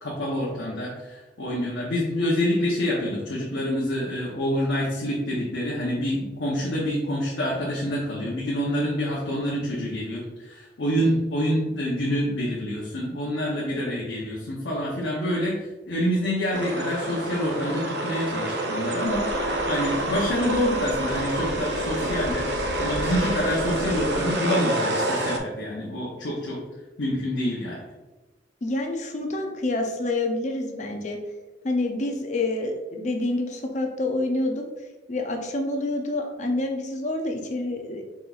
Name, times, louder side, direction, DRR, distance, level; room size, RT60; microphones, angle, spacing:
voice 1, 0.0-15.6 15.9-19.2 19.7-22.5 22.8-26.6 27.0-27.8, equal, 85° left, -5 dB, 0.8 m, -27 dB
sound 1, 16.5-25.4, right 1 dB, 65° right, 0.5 m, -28 dB
sound 2, 19.0-24.2, equal, 25° right, 1.2 m, -38 dB
voice 2, 28.6-31.2 31.6-34.6 35.1-38.0, left 2 dB, 40° left, 3 dB, 0.5 m, -27 dB
4.1 x 4.0 x 2.4 m, 1.1 s
head